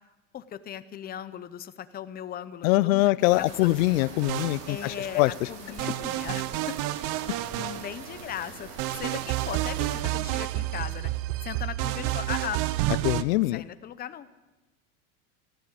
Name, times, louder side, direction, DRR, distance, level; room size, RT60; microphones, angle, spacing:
voice 1, 0.3-3.8 4.7-6.8 7.3-11.1 11.4-12.6 13.5-14.3, left 10 dB, 25° left, 13 dB, 0.7 m, -38 dB
voice 2, 2.6-5.5 13.0-13.6, left 19 dB, 75° left, 20 dB, 0.5 m, -23 dB
sound 1, 3.2-10.0, right 5 dB, 70° right, 3.3 m, -44 dB
sound 2, 4.2-5.1 5.8-8.3 8.8-13.2, right 16 dB, 50° right, 0.8 m, -30 dB
14.5 x 11.0 x 8.7 m, 1.1 s
supercardioid pair, 125°, 41 cm